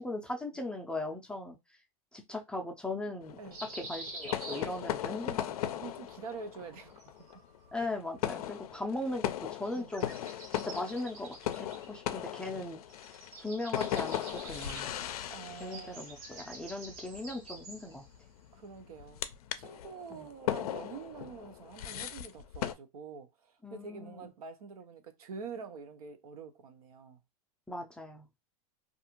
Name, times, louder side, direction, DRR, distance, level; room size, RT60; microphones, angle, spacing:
voice 1, 0.0-1.6 2.1-3.4 3.9-5.5 7.7-10.1 10.5-12.8 13.4-14.9 15.6-18.0 20.1-20.3 23.6-24.3 27.7-28.3, left 2 dB, 5° left, 0.4 m, -38 dB
sound 1, 3.2-22.7, left 11 dB, 80° left, 0.4 m, -38 dB
sound 2, 3.5-5.2 6.7-7.7 9.6-12.6 12.9-18.1, right 2 dB, 55° right, 1.2 m, -48 dB
voice 2, 5.8-7.4 9.7-9.9 15.3-16.2 18.5-19.2 19.5-27.2, right 5 dB, 75° right, 0.6 m, -46 dB
2.4 x 2.4 x 2.9 m
hypercardioid pair, 115°, 19 cm